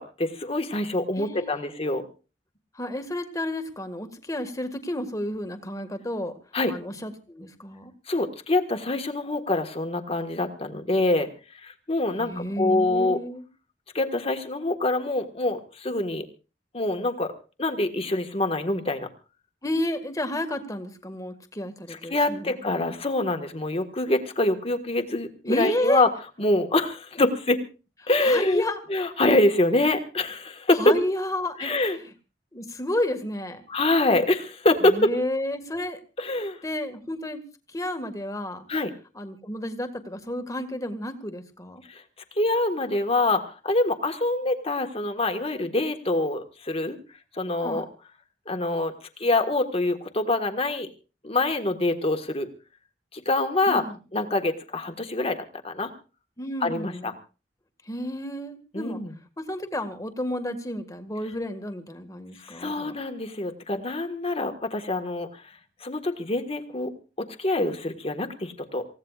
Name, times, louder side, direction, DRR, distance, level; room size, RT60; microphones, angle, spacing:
voice 1, 0.0-2.1 6.5-6.7 8.1-11.3 11.6-13.2 13.9-16.2 16.7-17.3 17.6-19.1 21.9-26.1 26.4-27.6 28.1-28.6 28.9-30.9 31.6-32.0 33.7-35.1 36.2-36.6 38.7-38.9 41.9-42.0 42.4-47.0 47.3-47.9 48.5-48.9 49.2-50.9 51.2-52.5 53.1-53.9 54.1-55.9 56.6-57.1 58.7-59.1 62.4-65.4 65.8-66.9 67.2-68.8, left 2 dB, 35° left, 7 dB, 1.6 m, -25 dB
voice 2, 1.2-1.7 2.8-6.3 6.7-7.9 12.2-13.4 19.6-22.6 25.5-26.0 28.2-29.1 30.7-31.7 32.5-33.6 34.8-36.0 36.6-37.4 37.7-38.6 39.2-41.8 47.6-47.9 53.7-54.0 56.4-57.1 57.9-59.0 59.4-63.0, left 1 dB, 20° left, 7 dB, 1.9 m, -31 dB
27.5 x 16.5 x 2.5 m, 0.34 s
head